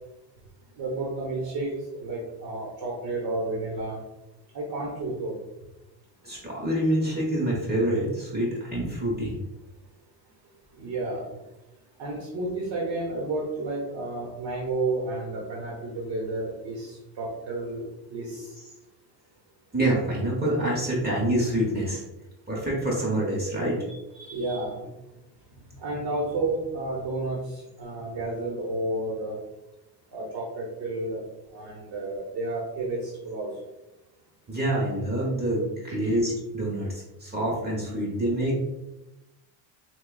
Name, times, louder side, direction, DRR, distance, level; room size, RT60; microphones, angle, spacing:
voice 1, 0.8-1.7 2.0-4.0 4.5-5.3 10.8-11.4 12.0-18.5 23.9-24.7 25.8-29.3 30.1-31.2 31.5-33.5 36.0-36.2, right 2 dB, 50° right, -3 dB, 1.0 m, -31 dB
voice 2, 6.2-9.4 19.7-22.0 22.5-23.9 34.5-38.6, right 1 dB, 20° right, -4 dB, 1.0 m, -26 dB
5.9 x 2.3 x 2.3 m, 0.98 s
cardioid pair, 115°, 45 cm